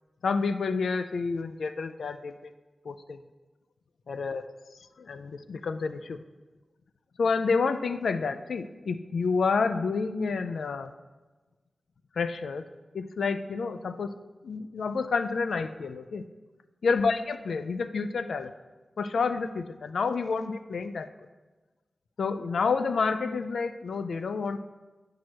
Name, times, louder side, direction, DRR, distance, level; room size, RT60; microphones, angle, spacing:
voice 1, 0.2-2.5 2.8-3.2 4.1-4.4 5.0-6.2 7.2-10.9 12.2-12.7 12.9-14.1 14.4-16.2 16.8-18.5 19.0-21.1 22.2-24.6, left 4 dB, 90° left, 11 dB, 0.4 m, -29 dB
9.5 x 4.7 x 6.0 m, 1.2 s
wide cardioid pair, 70°, 0 cm